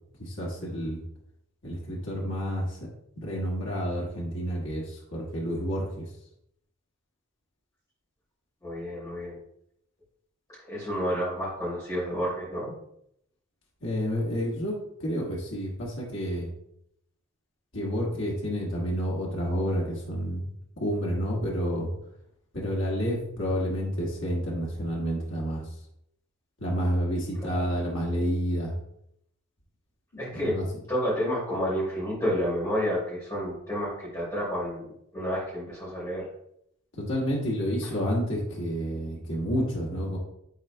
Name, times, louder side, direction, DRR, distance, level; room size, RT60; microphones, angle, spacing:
voice 1, 0.2-1.0 1.6-2.8 3.2-6.0 13.8-16.5 17.7-20.5 20.8-21.9 22.5-25.6 26.6-28.7 30.3-30.7 37.0-40.2, equal, 65° left, -3 dB, 1.6 m, -29 dB
voice 2, 8.6-9.4 10.7-12.7 27.4-27.6 30.2-30.6 30.9-34.8 35.1-36.3 37.8-37.9, equal, 15° left, -10 dB, 2.5 m, -30 dB
10.5 x 4.1 x 2.2 m, 0.75 s
head